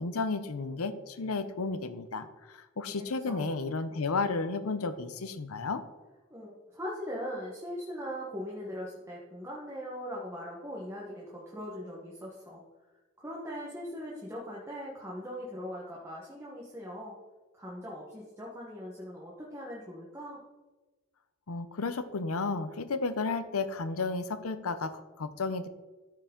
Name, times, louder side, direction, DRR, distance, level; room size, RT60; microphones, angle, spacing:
voice 1, 0.0-5.8 21.5-25.7, left 3 dB, 85° left, 11 dB, 0.7 m, -33 dB
voice 2, 2.8-3.5 6.3-12.6 13.2-17.2 17.5-20.4, equal, 15° right, -5 dB, 1.2 m, -40 dB
13.5 x 4.7 x 3.8 m, 1.2 s
head